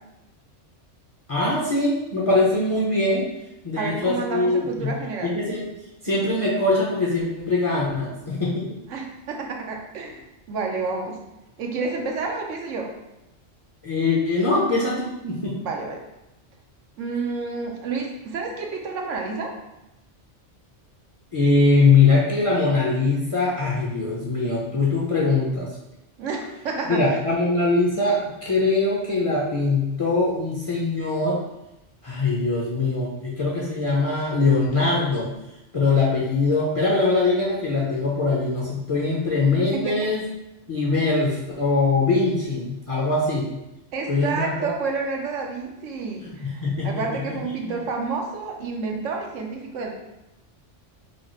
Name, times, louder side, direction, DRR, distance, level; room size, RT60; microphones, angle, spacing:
voice 1, 1.3-3.2 3.6-5.0 5.2-5.7 6.0-8.7 13.8-15.6 21.3-25.7 26.9-31.4 32.0-35.3 35.7-40.2 40.7-43.5 44.1-44.7 46.2-47.4 47.6-47.8, left 3 dB, 35° left, -5 dB, 0.6 m, -22 dB
voice 2, 3.8-5.4 8.9-11.2 11.6-12.9 15.6-16.1 17.0-19.5 26.2-27.1 39.7-39.9 43.9-49.9, right 4 dB, 85° right, 1 dB, 1.0 m, -29 dB
3.2 x 2.4 x 4.2 m, 0.94 s
omnidirectional pair, 1.2 m